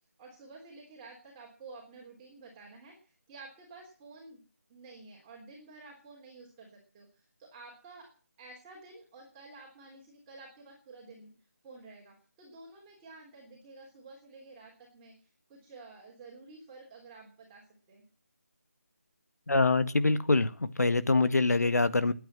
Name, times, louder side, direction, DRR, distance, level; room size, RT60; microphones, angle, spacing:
voice 1, 0.2-4.4 4.7-8.1 8.4-11.3 11.6-18.0, right 3 dB, 10° right, -3 dB, 3.3 m, -51 dB
voice 2, 19.5-22.1, left 3 dB, 75° left, 12 dB, 1.7 m, -25 dB
21.0 x 9.1 x 7.5 m, 0.40 s
figure-of-eight pair, 170°, 9 cm